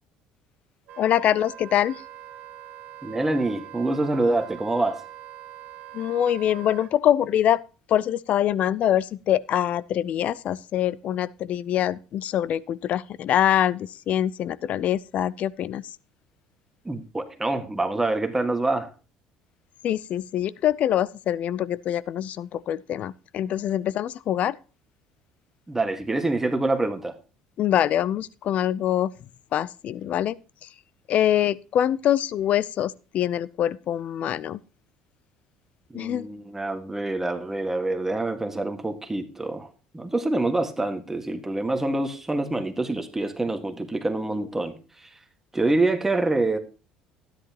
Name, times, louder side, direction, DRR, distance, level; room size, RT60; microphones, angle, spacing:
Wind instrument woodwind instrument, 0.9-6.9, right 11 dB, 65° right, 1.6 m, -43 dB
voice 1, 1.0-2.0 5.9-7.6 7.9-15.8 19.8-24.6 27.6-29.1 29.5-30.4 31.1-34.6 35.9-36.3, left 11 dB, 55° left, 0.5 m, -24 dB
voice 2, 3.0-5.0 16.8-18.9 25.7-27.1 35.9-39.7 39.9-45.1 45.5-46.6, right 2 dB, 15° right, 1.7 m, -26 dB
13.0 x 10.5 x 2.9 m
supercardioid pair, 85°, 3 cm